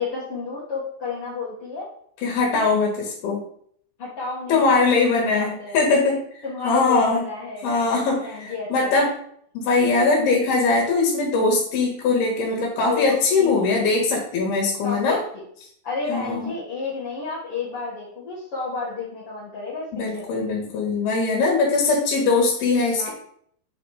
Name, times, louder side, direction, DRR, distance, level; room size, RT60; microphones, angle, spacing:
voice 1, 0.0-1.9 2.5-2.7 4.0-5.8 6.4-7.7 8.1-8.9 12.9-13.7 14.8-15.2 15.8-19.9 20.1-20.4 23.0-23.1, left 5 dB, 50° left, -8 dB, 1.7 m, -31 dB
voice 2, 2.2-3.4 4.5-7.3 7.6-9.1 9.5-15.2 16.1-16.5 19.9-23.1, left 3 dB, 70° left, -1 dB, 3.3 m, -21 dB
7.9 x 4.2 x 4.8 m, 0.65 s
omnidirectional pair, 4.8 m